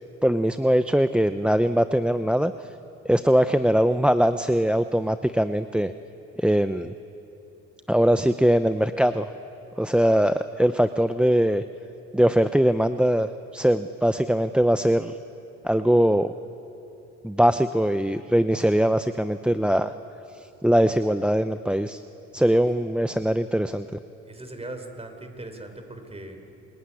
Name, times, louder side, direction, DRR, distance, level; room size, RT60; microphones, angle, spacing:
voice 1, 0.2-2.7 3.0-5.9 6.4-6.9 7.9-9.3 9.8-11.6 12.1-15.2 15.6-16.3 17.2-19.9 20.3-22.0 22.3-24.0, equal, 5° right, 10 dB, 0.7 m, -21 dB
voice 2, 24.3-26.5, right 2 dB, 20° right, 6 dB, 4.3 m, -39 dB
29.0 x 21.0 x 9.8 m, 3.0 s
cardioid pair, 90°, 30 cm